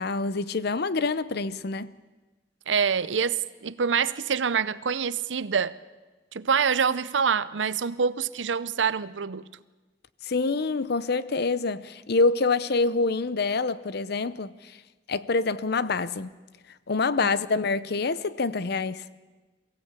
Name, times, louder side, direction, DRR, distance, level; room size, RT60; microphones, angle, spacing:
voice 1, 0.0-1.9 10.3-14.5 15.1-16.3 16.9-19.0, left 3 dB, 60° left, 0.7 m, -26 dB
voice 2, 2.7-5.8 6.3-9.5, right 6 dB, 85° right, 0.7 m, -26 dB
23.0 x 16.0 x 8.3 m
head